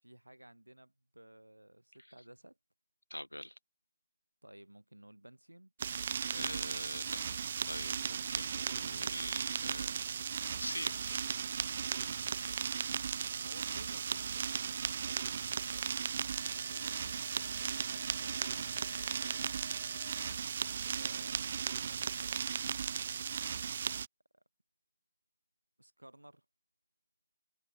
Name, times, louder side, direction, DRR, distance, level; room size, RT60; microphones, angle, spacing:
voice 1, 0.0-2.6 4.4-5.7 13.3-19.7 20.8-23.4 24.3-24.4 25.8-26.4, right 1 dB, 80° right, 6.3 m, -57 dB
voice 2, 3.1-3.6 6.2-7.4 7.7-10.0 10.6-11.2, left 1 dB, 85° left, 1.6 m, -43 dB
sound 1, 5.8-24.1, right 7 dB, 40° right, 0.6 m, -36 dB
sound 2, 8.2-8.3 9.1-9.3 10.4-21.3 21.9-22.0 22.6-22.7, left 7 dB, 40° left, 2.7 m, -56 dB
figure-of-eight pair, 145°, 0 cm